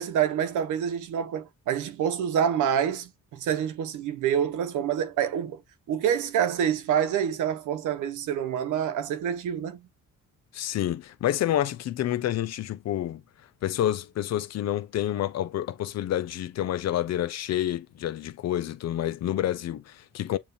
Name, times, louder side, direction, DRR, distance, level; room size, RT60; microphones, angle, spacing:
voice 1, 0.0-5.6 5.9-9.9, right 9 dB, 85° right, 0.9 m, -27 dB
voice 2, 10.5-13.2 13.6-20.4, left 12 dB, 60° left, 0.6 m, -28 dB
7.1 x 2.6 x 2.7 m
cardioid pair, 90°, 30 cm